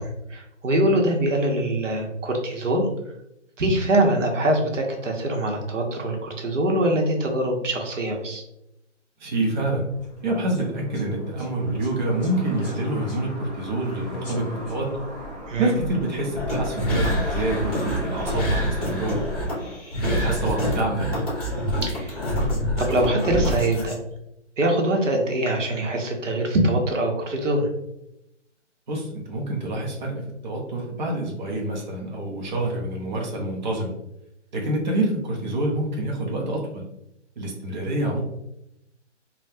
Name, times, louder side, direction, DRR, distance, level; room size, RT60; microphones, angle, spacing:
voice 1, 0.0-2.9 3.6-8.4 15.5-15.7 21.8-22.2 22.8-24.0 24.6-27.7, right 1 dB, 90° right, 2 dB, 1.0 m, -23 dB
voice 2, 9.2-9.8 10.2-14.9 15.6-19.2 20.0-21.1 28.9-33.9 34.5-36.8 37.4-38.2, right 1 dB, 40° right, -2 dB, 0.6 m, -27 dB
sound 1, 9.9-19.7, equal, 5° left, 0.7 m, -37 dB
sound 2, 16.3-23.9, equal, 30° left, 1.3 m, -26 dB
3.4 x 2.2 x 2.7 m, 0.83 s
hypercardioid pair, 165°, 36 cm